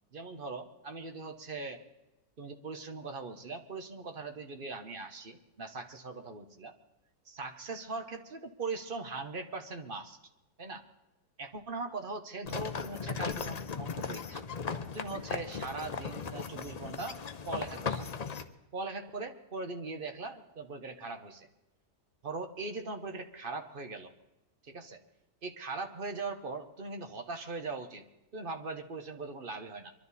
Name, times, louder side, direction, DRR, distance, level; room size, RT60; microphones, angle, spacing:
voice 1, 0.1-1.8 2.4-6.8 7.3-10.2 10.6-10.8 11.4-14.4 14.9-17.2 17.4-18.1 18.7-21.5 22.2-24.1 24.6-25.0 25.4-28.0 28.3-29.9, right 3 dB, 40° right, 6 dB, 1.0 m, -40 dB
sound 1, 12.4-18.4, left 5 dB, 85° left, 0.3 m, -37 dB
24.0 x 12.0 x 4.1 m, 0.95 s
omnidirectional pair, 1.7 m